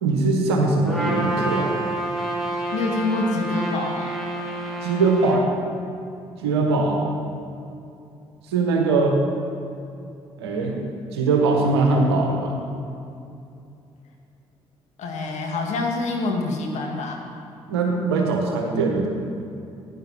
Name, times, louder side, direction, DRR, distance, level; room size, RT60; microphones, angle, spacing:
voice 1, 0.0-1.7 4.8-5.5 6.4-7.0 8.5-9.2 10.4-10.8 11.1-12.6 17.7-19.1, right 3 dB, 80° right, 1 dB, 1.4 m, -21 dB
Trumpet, 0.8-5.4, right 1 dB, ahead, 3.1 m, -28 dB
voice 2, 2.7-4.2 15.0-17.2, left 2 dB, 60° left, 0 dB, 2.1 m, -26 dB
15.0 x 10.5 x 4.3 m, 2.6 s
hypercardioid pair, 45°, 13 cm